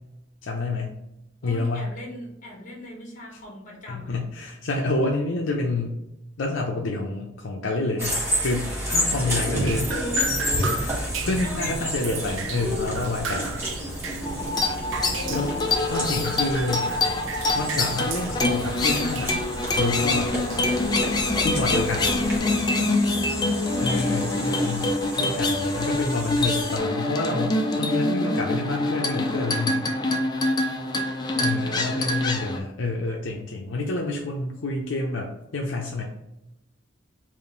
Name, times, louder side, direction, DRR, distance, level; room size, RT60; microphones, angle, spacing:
voice 1, 0.4-1.0 1.4-1.9 3.9-6.0 6.4-9.9 10.7-13.5 15.3-15.5 15.9-16.9 17.5-19.4 19.8-20.7 21.4-22.1 23.8-24.9 25.2-29.9 31.4-36.0, left 2 dB, 70° left, 0 dB, 0.5 m, -28 dB
voice 2, 1.4-4.1 9.4-10.4 11.4-11.9 13.5-13.8 15.1-15.5 21.8-22.8 23.8-24.5 31.2-31.7, left 1 dB, 40° left, -1 dB, 1.2 m, -38 dB
sound 1, 8.0-26.8, equal, 15° right, 1.1 m, -32 dB
Drip, 9.5-22.4, right 3 dB, 75° right, 0.5 m, -34 dB
sound 2, 14.2-32.6, left 2 dB, 20° left, 0.4 m, -25 dB
3.6 x 2.5 x 3.7 m, 0.90 s
head